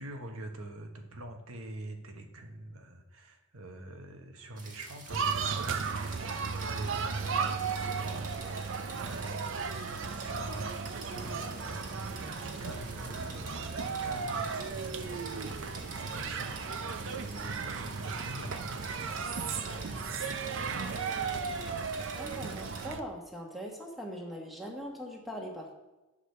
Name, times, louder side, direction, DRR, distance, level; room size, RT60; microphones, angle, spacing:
voice 1, 0.0-8.3 9.0-20.8, right 1 dB, 80° right, 5 dB, 1.2 m, -45 dB
sound 1, 4.6-22.9, right 3 dB, 40° right, 1.4 m, -49 dB
sound 2, 5.1-23.0, right 5 dB, 60° right, 0.6 m, -35 dB
sound 3, 11.0-21.4, left 1 dB, 30° left, 1.4 m, -52 dB
voice 2, 22.1-25.7, equal, ahead, -1 dB, 1.3 m, -41 dB
8.4 x 4.9 x 6.7 m, 1.1 s
head